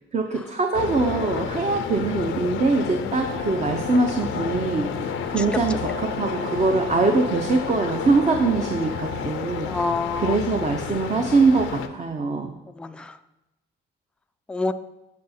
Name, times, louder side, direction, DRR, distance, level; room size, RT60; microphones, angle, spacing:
voice 1, 0.1-4.9 5.3-9.7 10.2-12.5, right 3 dB, 35° right, 4 dB, 0.7 m, -23 dB
sound 1, 0.7-11.9, left 8 dB, 90° left, 0.6 m, -31 dB
Brass instrument, 3.2-9.5, left 2 dB, 70° right, 2.3 m, -36 dB
voice 2, 5.2-5.8 9.6-10.4 12.8-13.2 14.5-14.7, left 3 dB, 5° left, 9 dB, 0.3 m, -28 dB
8.4 x 4.7 x 4.2 m, 0.95 s
cardioid pair, 90°, 20 cm